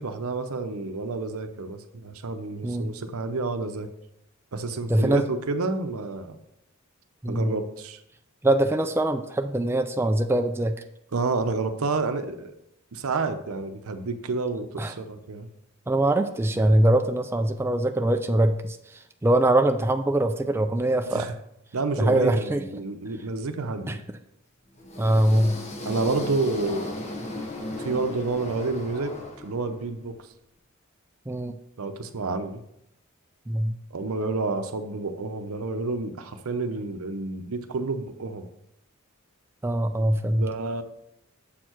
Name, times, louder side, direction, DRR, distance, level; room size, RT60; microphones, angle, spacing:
voice 1, 0.0-3.9 4.5-6.4 7.3-8.0 11.1-12.5 12.9-15.5 21.1-21.3 21.7-24.0 25.8-26.9 27.8-30.3 31.8-32.6 33.9-38.5 40.3-40.8, right 3 dB, 75° right, 9 dB, 0.7 m, -29 dB
voice 2, 4.9-5.2 7.2-7.5 8.4-10.8 14.8-14.9 15.9-18.8 19.2-21.3 22.0-22.6 23.9-24.0 25.0-25.6 31.3-31.5 33.5-33.7 39.6-40.5, right 1 dB, 10° right, 6 dB, 0.3 m, -22 dB
sound 1, 24.8-29.9, left 1 dB, 30° left, 1.0 m, -36 dB
7.4 x 4.6 x 4.4 m, 0.78 s
head